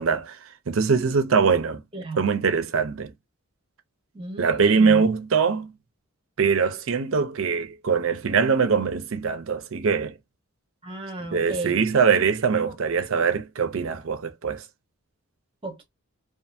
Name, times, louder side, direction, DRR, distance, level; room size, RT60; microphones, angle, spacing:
voice 1, 0.0-1.8 2.2-3.1 4.4-5.7 6.4-10.1 11.3-14.6, right 5 dB, 65° right, 0.5 m, -22 dB
voice 2, 4.1-5.1 10.8-11.8 12.6-12.7 15.6-15.8, right 2 dB, 25° right, 0.8 m, -34 dB
2.7 x 2.5 x 2.4 m
head